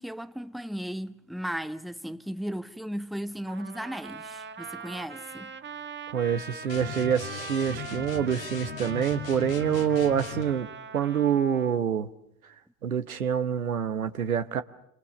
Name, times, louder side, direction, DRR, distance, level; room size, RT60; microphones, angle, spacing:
voice 1, 0.0-5.5, equal, ahead, 1.2 m, -36 dB
Trumpet, 3.5-11.8, right 6 dB, 25° right, 1.3 m, -42 dB
voice 2, 6.1-10.7 10.9-12.1 12.8-14.6, right 8 dB, 80° right, 1.1 m, -26 dB
sound 1, 6.7-10.5, left 9 dB, 75° left, 2.7 m, -38 dB
28.0 x 26.0 x 7.0 m
figure-of-eight pair, 55°, 42 cm